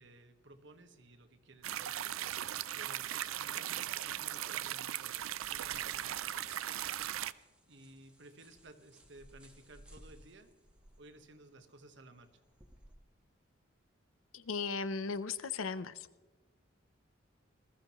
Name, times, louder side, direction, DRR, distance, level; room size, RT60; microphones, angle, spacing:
voice 1, 0.0-2.1 2.7-6.7 7.7-10.5 11.0-12.4, right 2 dB, 60° right, 8 dB, 1.3 m, -57 dB
sound 1, 1.6-12.9, right 1 dB, 5° right, 1.3 m, -63 dB
sound 2, 1.6-7.3, right 12 dB, 85° right, 0.5 m, -38 dB
voice 2, 14.3-16.1, left 5 dB, 80° left, 14 dB, 0.7 m, -37 dB
20.0 x 14.0 x 3.1 m, 1.2 s
head